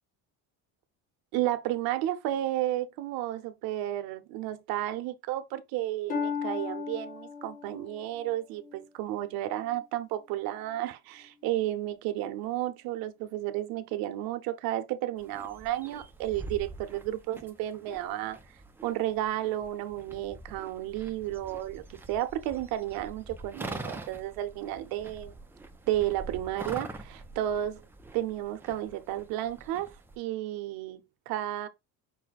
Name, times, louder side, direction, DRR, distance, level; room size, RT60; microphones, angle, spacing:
voice 1, 1.3-18.4 18.8-25.3 25.9-27.8 28.1-31.7, right 13 dB, 75° right, 0.9 m, -32 dB
Harp, 6.1-9.8 10.4-10.8 11.4-11.5, left 6 dB, 20° left, 0.9 m, -37 dB
sound 1, 15.2-30.2, right 2 dB, 5° right, 0.3 m, -45 dB
5.6 x 2.2 x 4.0 m
cardioid pair, 155°, 36 cm